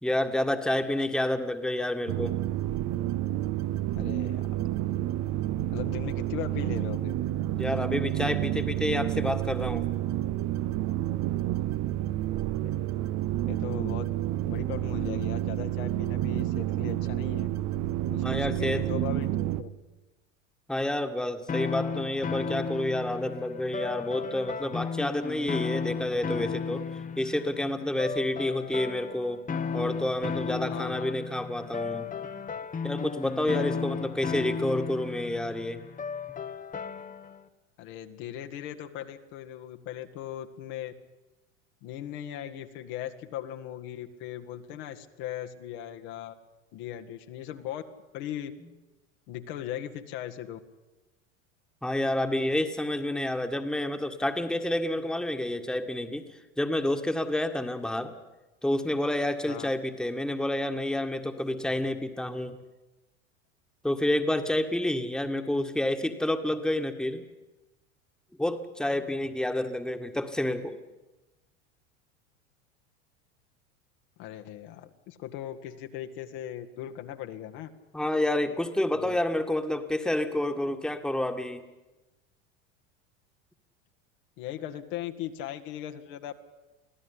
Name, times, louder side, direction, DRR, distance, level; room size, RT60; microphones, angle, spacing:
voice 1, 0.0-2.4 7.5-9.9 18.2-18.9 20.7-26.9 27.2-29.4 29.7-32.1 32.8-35.8 51.8-56.3 56.6-58.1 58.6-62.6 63.8-67.2 68.4-70.8 77.9-81.6, left 1 dB, ahead, 6 dB, 1.9 m, -29 dB
sound 1, 2.1-19.6, right 14 dB, 50° right, 1.1 m, -29 dB
voice 2, 4.0-4.5 5.7-7.1 13.5-14.1 14.4-17.5 18.1-19.3 19.6-19.7 30.7-31.1 32.5-32.7 37.8-40.9 41.8-46.3 46.7-47.8 48.1-48.5 49.3-50.6 59.5-59.7 74.2-77.7 78.9-79.2 84.4-86.3, left 11 dB, 60° left, 6 dB, 2.0 m, -38 dB
sound 2, 21.5-37.4, left 6 dB, 20° left, 1.2 m, -34 dB
24.5 x 15.5 x 10.0 m, 1.1 s
hypercardioid pair, 95°, 39 cm